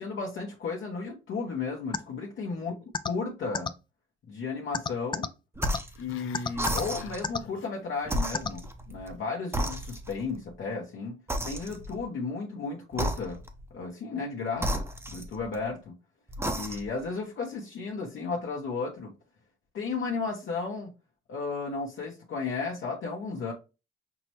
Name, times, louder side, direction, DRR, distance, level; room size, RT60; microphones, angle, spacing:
voice 1, 0.0-2.7 3.1-3.7 4.3-5.3 6.0-13.4 13.7-14.8 15.1-15.9 16.5-19.1 19.7-20.9 21.3-23.5, left 4 dB, 70° left, 1.0 m, -34 dB
sound 1, 1.9-2.0 2.9-3.1 3.5-3.7 4.7-5.3 5.6-5.8 6.3-6.8 7.2-7.4 8.3-8.5, left 5 dB, 25° left, 0.3 m, -28 dB
sound 2, 5.6-6.0 6.5-7.3 8.0-9.2 9.5-10.3 11.3-12.0 12.9-13.6 14.6-15.7 16.3-17.0, right 1 dB, 10° right, 0.7 m, -32 dB
Growling, 5.8-8.2 8.4-8.8 9.2-9.3, left 7 dB, 85° left, 0.4 m, -47 dB
5.9 x 2.0 x 2.9 m
cardioid pair, 90°, 20 cm